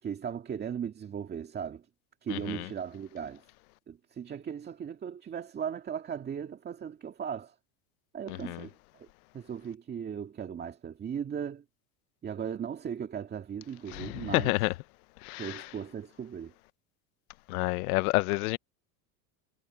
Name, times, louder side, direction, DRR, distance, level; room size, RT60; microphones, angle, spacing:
voice 1, 0.0-1.9 2.2-3.4 3.9-7.5 8.1-9.1 9.3-11.6 12.2-14.5 15.4-16.5, right 8 dB, 20° right, 2.0 m, -37 dB
voice 2, 2.3-2.7 8.3-8.6 13.9-14.7 15.2-15.6 17.5-18.6, left 23 dB, 70° left, 1.0 m, -29 dB
supercardioid pair, 145°, 46 cm